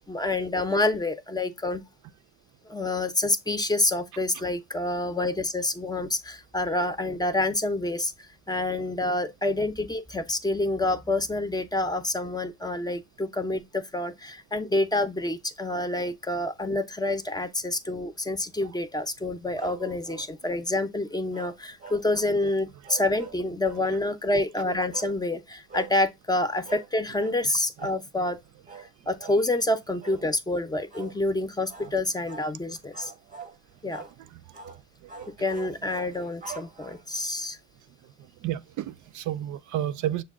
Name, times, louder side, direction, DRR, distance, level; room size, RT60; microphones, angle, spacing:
voice 1, 0.1-1.8 2.7-8.1 8.5-28.4 28.8-33.1 33.8-34.0 35.4-37.6, left 2 dB, 15° left, 0.5 m, -27 dB
sound 1, 19.6-20.3 21.3-22.3 22.8-23.9 24.9-25.2 25.7-26.0 26.6-26.9 27.2-27.4 27.8-28.0 28.7-28.9 29.2-29.4 30.0-30.3 30.9-31.2 31.7-31.9 32.3-32.5 32.9-33.6 33.9-34.2 34.5-34.8 35.1-37.2, right 5 dB, 25° right, 0.6 m, -43 dB
voice 2, 19.9-20.2 34.2-34.4 35.8-36.0 38.4-40.2, right 12 dB, 75° right, 0.5 m, -32 dB
6.4 x 2.2 x 3.5 m
cardioid pair, 90°, 30 cm